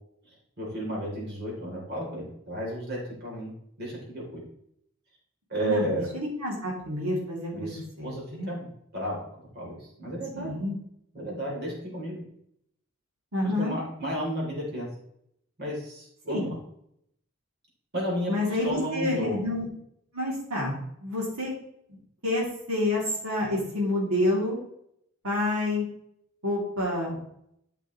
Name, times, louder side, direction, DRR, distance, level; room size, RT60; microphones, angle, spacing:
voice 1, 0.6-3.5 3.8-4.4 5.5-6.1 7.5-9.2 9.5-10.5 11.1-12.2 13.4-14.9 15.6-16.6 17.9-18.3 18.6-19.4, equal, 50° right, -4 dB, 3.2 m, -32 dB
voice 2, 5.6-8.5 10.3-10.8 13.3-13.7 16.3-16.5 18.3-19.7 20.1-21.5 22.2-24.6 25.2-25.8 26.4-27.2, left 1 dB, 80° right, -4 dB, 2.8 m, -28 dB
12.0 x 6.0 x 3.1 m, 0.74 s
head